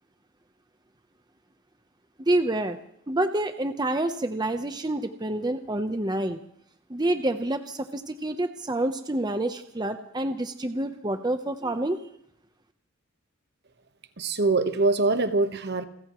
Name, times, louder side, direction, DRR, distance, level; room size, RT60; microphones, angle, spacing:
voice 1, 2.3-2.8 3.1-6.4 6.9-12.0, right 1 dB, 20° right, 7 dB, 0.9 m, -27 dB
voice 2, 14.2-15.9, right 3 dB, 55° right, 9 dB, 1.3 m, -23 dB
29.5 x 15.0 x 3.2 m, 0.72 s
head